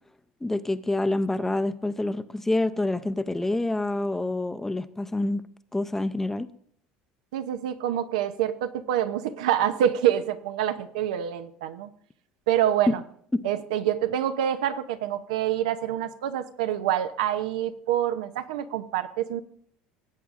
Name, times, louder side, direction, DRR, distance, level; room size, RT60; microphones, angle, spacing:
voice 1, 0.4-5.5 5.7-6.5 12.9-13.0 13.3-13.5, left 2 dB, 10° left, 11 dB, 0.5 m, -27 dB
voice 2, 7.3-11.9 12.5-13.0 13.4-19.4, right 10 dB, 90° right, 10 dB, 0.7 m, -26 dB
18.0 x 8.2 x 2.5 m, 0.64 s
supercardioid pair, 105°, 4 cm